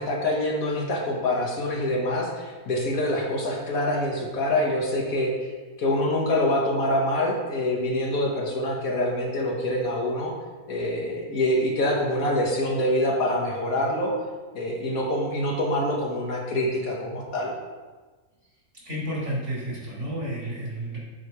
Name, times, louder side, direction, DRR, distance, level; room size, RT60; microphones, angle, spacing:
voice 1, 0.0-5.5 5.8-10.3 10.7-14.1 14.5-17.5, left 1 dB, 80° left, -1 dB, 1.6 m, -25 dB
voice 2, 18.8-21.0, right 1 dB, 55° right, -6 dB, 2.7 m, -31 dB
8.4 x 3.1 x 4.7 m, 1.3 s
omnidirectional pair, 1.5 m